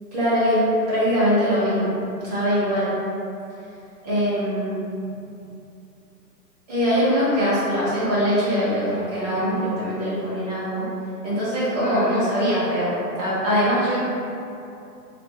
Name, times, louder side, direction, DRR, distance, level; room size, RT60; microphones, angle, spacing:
voice 1, 0.1-0.6 0.9-1.9 2.2-2.9 4.0-4.8 6.7-10.9 11.2-14.0, equal, 25° right, -10 dB, 0.9 m, -22 dB
3.3 x 2.6 x 3.2 m, 2.7 s
hypercardioid pair, 165°, 49 cm